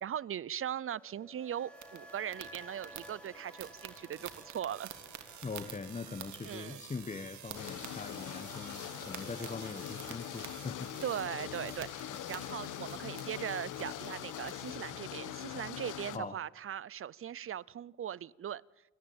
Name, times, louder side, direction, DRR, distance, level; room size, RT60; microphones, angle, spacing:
voice 1, 0.0-4.9 6.4-6.8 11.0-18.6, right 10 dB, 45° right, 23 dB, 0.7 m, -39 dB
sound 1, 0.9-9.0 9.3-9.6, equal, 5° left, 5.3 m, -55 dB
sound 2, 1.8-14.8, right 9 dB, 70° right, 3.0 m, -50 dB
voice 2, 5.4-10.9 12.2-12.4 16.1-16.4, left 4 dB, 25° left, 12 dB, 1.3 m, -42 dB
sound 3, 7.5-16.2, left 12 dB, 85° left, 1.4 m, -42 dB
27.5 x 14.5 x 8.8 m, 1.1 s
cardioid pair, 90°, 30 cm